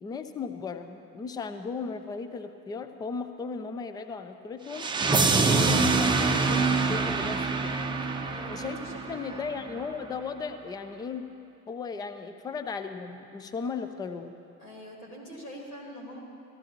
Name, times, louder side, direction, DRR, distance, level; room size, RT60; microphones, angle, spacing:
voice 1, 0.0-4.9 5.4-7.7 8.5-8.8 9.1-11.3 11.7-14.3, left 5 dB, 10° left, 9 dB, 0.3 m, -36 dB
sound 1, 4.7-9.7, right 3 dB, 10° right, 0.7 m, -25 dB
voice 2, 8.2-8.9 9.3-9.5 14.6-16.2, equal, 75° left, -3 dB, 3.7 m, -44 dB
19.0 x 14.5 x 3.0 m, 2.6 s
figure-of-eight pair, 75°, 47 cm